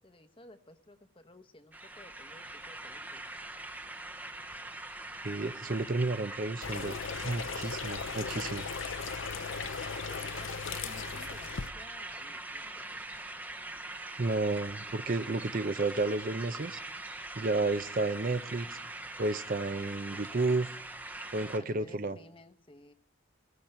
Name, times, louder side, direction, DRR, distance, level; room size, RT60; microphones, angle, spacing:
voice 1, 0.0-3.2 9.6-13.0 20.1-20.5 21.4-22.9, left 1 dB, 25° left, 0.9 m, -55 dB
sound 1, 1.7-21.6, right 2 dB, 10° right, 0.8 m, -43 dB
voice 2, 5.2-7.0 7.2-8.7 14.2-16.8 17.4-18.8 19.2-20.7 21.3-22.2, right 3 dB, 40° right, 0.6 m, -31 dB
sound 2, 6.6-11.7, left 6 dB, 65° left, 0.6 m, -38 dB
20.5 x 15.5 x 4.4 m
head